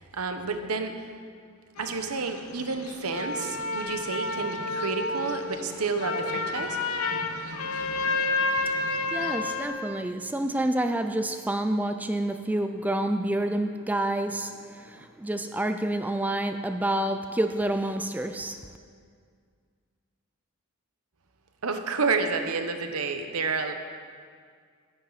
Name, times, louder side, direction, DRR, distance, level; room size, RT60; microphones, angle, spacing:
voice 1, 0.1-0.9 1.8-6.8 21.6-23.7, right 4 dB, 90° right, 7 dB, 1.0 m, -30 dB
sound 1, 1.8-9.7, left 3 dB, 80° left, 1.0 m, -30 dB
voice 2, 8.6-18.7, right 1 dB, 5° right, 8 dB, 0.3 m, -28 dB
17.0 x 10.0 x 4.1 m, 2.1 s
head